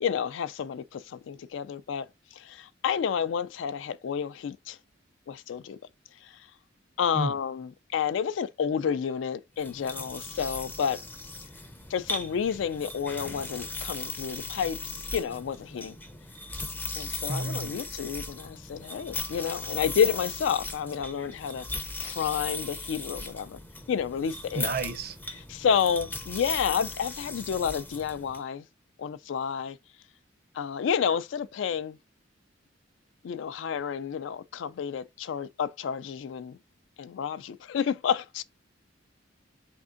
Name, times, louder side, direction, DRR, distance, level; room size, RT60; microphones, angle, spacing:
voice 1, 0.0-2.1 2.4-4.8 5.3-5.8 7.0-11.0 11.9-16.0 17.0-21.7 22.0-23.6 23.9-24.7 25.5-28.6 29.0-29.8 30.5-32.0 33.2-36.6 37.0-38.4, left 7 dB, 75° left, 0.3 m, -30 dB
sound 1, 9.6-28.4, left 3 dB, 10° left, 0.4 m, -38 dB
voice 2, 17.3-17.8 24.5-25.2, right 3 dB, 55° right, 0.6 m, -31 dB
4.2 x 3.6 x 2.5 m
head